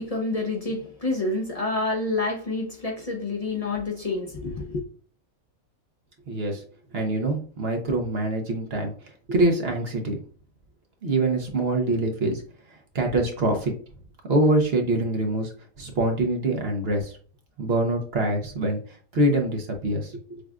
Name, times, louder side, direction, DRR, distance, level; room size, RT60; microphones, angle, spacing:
voice 1, 0.0-4.8, left 2 dB, 40° left, 0.6 m, -28 dB
voice 2, 6.3-6.6 6.9-8.9 9.3-10.2 11.0-12.4 12.9-13.7 14.3-15.5 15.8-17.1 17.6-18.8 19.1-20.4, right 2 dB, 50° right, 0.9 m, -24 dB
6.3 x 2.4 x 2.3 m
omnidirectional pair, 1.5 m